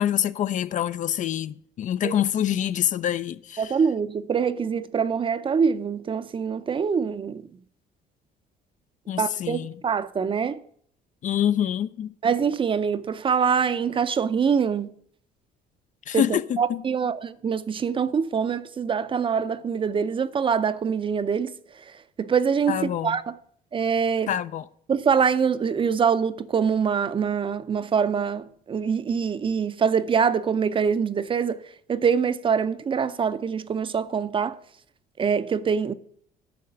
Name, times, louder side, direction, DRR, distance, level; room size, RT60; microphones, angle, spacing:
voice 1, 0.0-3.7 9.1-9.7 11.2-12.1 16.1-16.4 16.7-16.8 22.7-23.2 24.3-24.6, left 10 dB, 50° left, 0.4 m, -26 dB
voice 2, 3.6-7.4 9.2-10.6 12.2-14.9 16.1-21.5 22.2-23.4 23.7-24.3 24.9-31.6 31.9-34.6 35.2-35.9, right 6 dB, 30° right, 0.5 m, -24 dB
9.4 x 5.8 x 7.6 m
cardioid pair, 110°, 17 cm